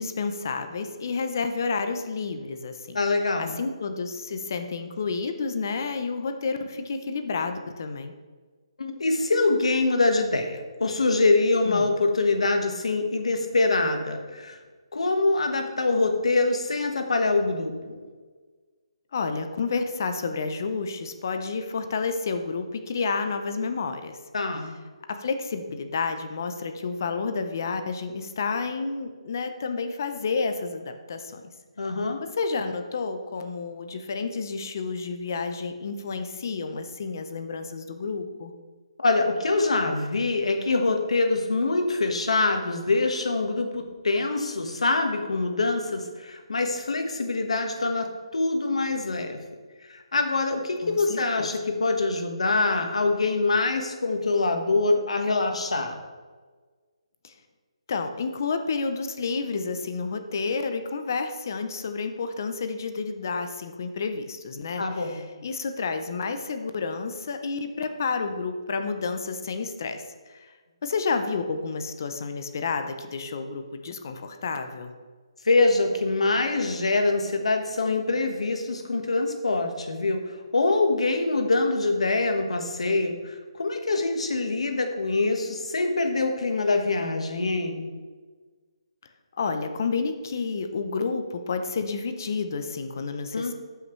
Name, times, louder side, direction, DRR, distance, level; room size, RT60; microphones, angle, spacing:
voice 1, 0.0-3.0 3.4-8.1 11.6-11.9 19.1-24.2 25.2-31.5 32.4-38.5 50.8-51.5 57.2-57.3 57.9-70.5 70.8-74.9 89.4-93.5, left 4 dB, 35° left, 7 dB, 0.6 m, -30 dB
voice 2, 2.9-3.6 8.8-14.6 14.9-18.0 24.3-24.7 31.8-32.2 39.0-49.4 49.9-56.0 64.8-65.2 75.4-87.9 93.3-93.5, left 3 dB, 85° left, 4 dB, 1.4 m, -24 dB
12.5 x 5.6 x 3.1 m, 1.4 s
hypercardioid pair, 175°, 3 cm